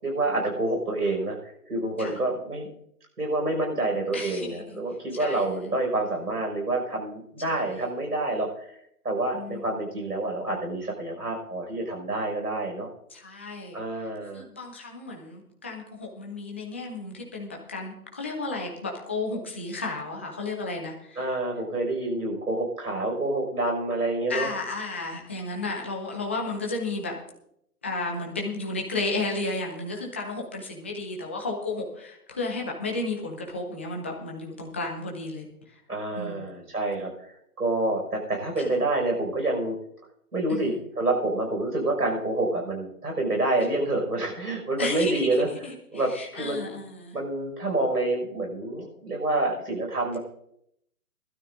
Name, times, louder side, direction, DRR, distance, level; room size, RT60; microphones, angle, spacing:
voice 1, 0.0-2.7 3.2-8.7 9.0-12.9 13.7-14.4 21.2-24.5 35.9-39.8 40.3-45.5 45.9-46.7 47.1-50.2, right 2 dB, 85° right, 1 dB, 5.9 m, -28 dB
voice 2, 4.1-4.8 5.2-5.5 7.5-7.8 9.3-9.6 13.1-13.8 14.3-21.3 24.3-27.1 27.8-35.8 36.1-36.5 38.6-38.7 40.5-40.8 44.8-47.1, left 2 dB, 10° left, 0 dB, 0.5 m, -33 dB
20.0 x 12.5 x 2.6 m, 0.74 s
figure-of-eight pair, 140°, 45 cm